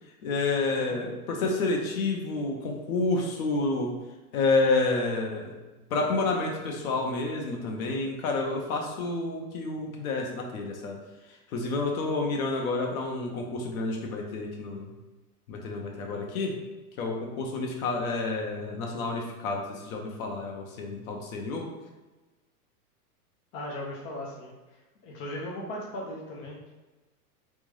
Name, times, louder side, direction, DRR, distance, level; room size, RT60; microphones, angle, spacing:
voice 1, 0.2-3.9 4.3-5.6 5.9-11.0 11.5-14.9 15.5-16.6 17.0-21.7, left 3 dB, 60° left, 1 dB, 1.0 m, -29 dB
voice 2, 23.5-26.7, left 1 dB, 20° left, -3 dB, 0.3 m, -38 dB
3.4 x 2.6 x 3.2 m, 1.2 s
hypercardioid pair, 115°, 46 cm